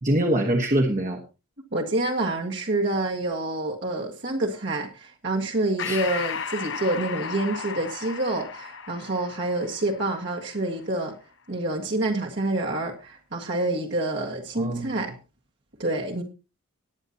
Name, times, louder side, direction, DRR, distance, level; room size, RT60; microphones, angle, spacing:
voice 1, 0.0-1.2 5.8-6.0 14.6-15.0, right 1 dB, 35° right, 1.2 m, -24 dB
voice 2, 1.7-11.2 11.5-15.1 15.8-16.2, right 2 dB, 55° right, 1.7 m, -27 dB
Breathing, 5.8-10.7, left 6 dB, 55° left, 0.9 m, -35 dB
19.0 x 9.3 x 2.8 m
head